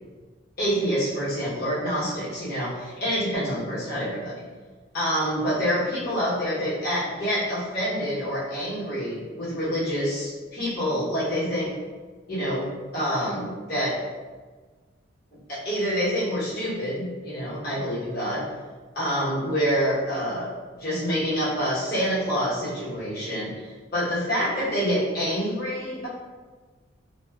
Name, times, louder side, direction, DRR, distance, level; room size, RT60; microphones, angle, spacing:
voice 1, 0.6-4.4 4.9-11.7 12.3-14.0 15.5-18.5 18.9-20.5 20.8-26.1, equal, 50° left, -9 dB, 1.0 m, -27 dB
2.6 x 2.2 x 2.3 m, 1.4 s
head